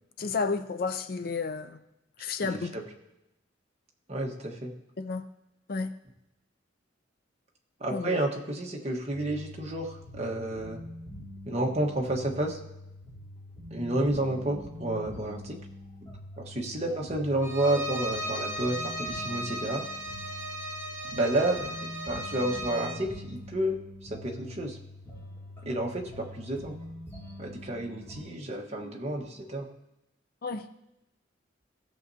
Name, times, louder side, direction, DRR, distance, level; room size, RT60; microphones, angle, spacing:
voice 1, 0.2-1.8 2.2-2.8 5.0-5.3 5.7-6.0 7.9-8.2 16.9-17.1 30.4-30.7, left 4 dB, 50° left, 10 dB, 0.5 m, -32 dB
voice 2, 4.1-4.7 7.8-10.8 11.5-12.6 13.7-15.6 16.4-19.8 21.1-21.7 22.1-23.8 24.1-24.8 25.6-26.8 27.4-29.7, right 1 dB, 35° right, 0 dB, 1.3 m, -30 dB
sound 1, 9.1-28.2, left 1 dB, 15° left, 3.2 m, -44 dB
Bowed string instrument, 17.4-23.0, right 1 dB, 15° right, 1.5 m, -36 dB
16.0 x 7.2 x 2.8 m, 0.90 s
head